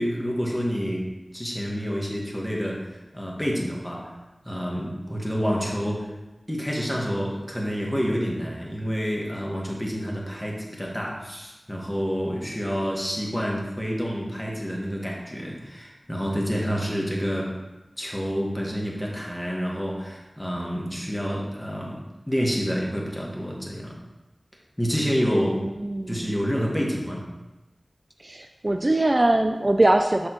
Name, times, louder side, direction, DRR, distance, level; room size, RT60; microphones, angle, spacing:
voice 1, 0.0-4.2 4.4-6.1 6.5-17.6 18.0-24.0 24.8-25.7 26.1-27.2, equal, 10° left, -2 dB, 1.6 m, -28 dB
voice 2, 25.6-26.3 28.2-30.3, right 1 dB, 40° right, 5 dB, 0.4 m, -22 dB
6.2 x 6.1 x 3.1 m, 1.1 s
wide cardioid pair, 45°, 0 cm